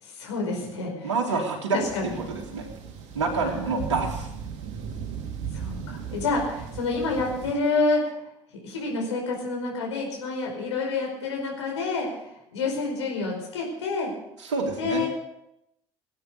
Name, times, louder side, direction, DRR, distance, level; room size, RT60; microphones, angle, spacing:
voice 1, 0.0-1.4 1.7-2.2 3.4-3.8 5.5-8.1 8.6-12.1 12.5-14.1 14.8-15.1, left 3 dB, 75° left, -1 dB, 5.0 m, -28 dB
voice 2, 1.0-2.7 3.1-4.3 14.4-15.0, right 4 dB, 70° right, 0 dB, 2.5 m, -27 dB
sound 1, 1.8-7.5, right 7 dB, 55° right, 2.5 m, -37 dB
18.5 x 9.4 x 6.8 m, 0.83 s
figure-of-eight pair, 60°, 15 cm